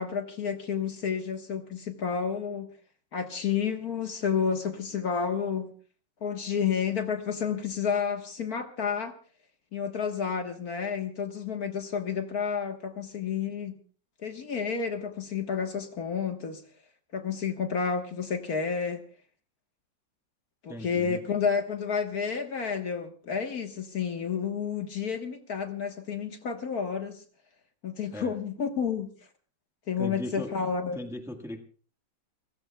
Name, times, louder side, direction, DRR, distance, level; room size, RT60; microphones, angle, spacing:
voice 1, 0.0-2.7 3.1-5.7 6.2-9.1 9.7-13.8 14.2-16.6 17.1-19.0 20.6-27.2 27.8-29.1 29.9-31.0, left 6 dB, 55° left, 5 dB, 1.8 m, -30 dB
voice 2, 20.7-21.2 28.1-28.3 30.0-30.5 30.9-31.6, left 1 dB, ahead, 4 dB, 1.3 m, -38 dB
29.0 x 16.0 x 2.3 m, 0.40 s
omnidirectional pair, 2.0 m